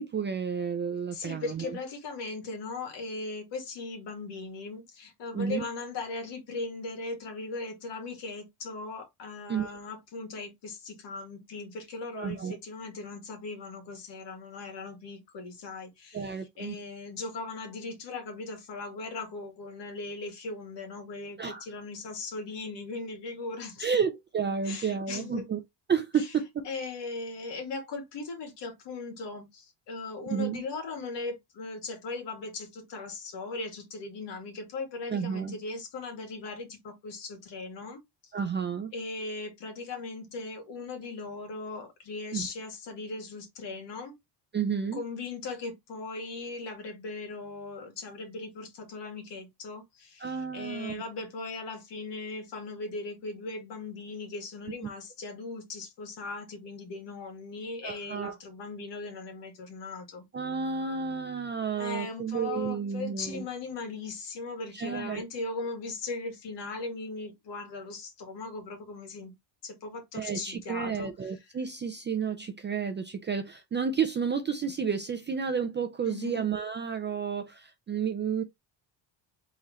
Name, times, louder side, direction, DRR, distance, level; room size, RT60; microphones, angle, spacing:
voice 1, 0.0-1.6 5.3-5.6 9.5-9.7 12.1-12.6 16.1-16.8 21.4-21.7 23.8-25.6 25.9-26.7 30.3-30.6 35.1-35.6 38.3-38.9 42.3-42.5 44.5-45.0 50.2-51.0 57.8-58.4 60.3-63.5 64.7-65.2 70.1-78.4, right 6 dB, 25° right, 0.3 m, -31 dB
voice 2, 1.1-23.9 24.6-25.4 26.2-26.3 26.6-38.3 38.9-44.2 44.9-60.2 61.8-69.3 69.6-71.3 76.0-76.5, left 3 dB, 60° left, 2.1 m, -38 dB
3.7 x 3.0 x 4.2 m
cardioid pair, 155°, 48 cm